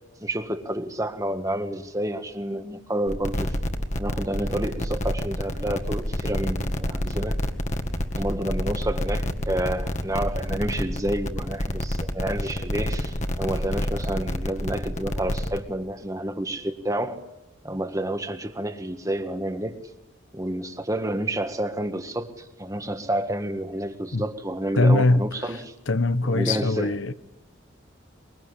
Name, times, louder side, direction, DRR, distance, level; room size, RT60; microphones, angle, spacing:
voice 1, 0.2-3.6 4.0-7.4 8.2-17.2 17.6-19.8 20.3-25.7 26.2-27.0, right 1 dB, 15° right, 1.7 m, -29 dB
sound 1, 3.1-15.6, equal, 35° left, 1.9 m, -28 dB
voice 2, 24.8-25.3 25.9-27.1, left 2 dB, 85° left, 1.1 m, -21 dB
24.0 x 23.0 x 10.0 m
head